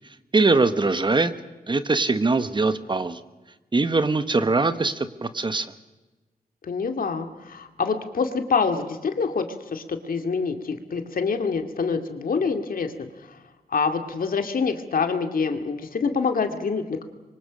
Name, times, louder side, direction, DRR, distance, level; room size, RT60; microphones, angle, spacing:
voice 1, 0.3-1.3 1.7-3.2 3.7-5.7, right 3 dB, 30° right, 12 dB, 1.1 m, -22 dB
voice 2, 6.6-13.4 13.7-17.0, left 5 dB, 70° left, 7 dB, 2.3 m, -26 dB
26.0 x 24.0 x 6.3 m, 1.2 s
wide cardioid pair, 120°, 15 cm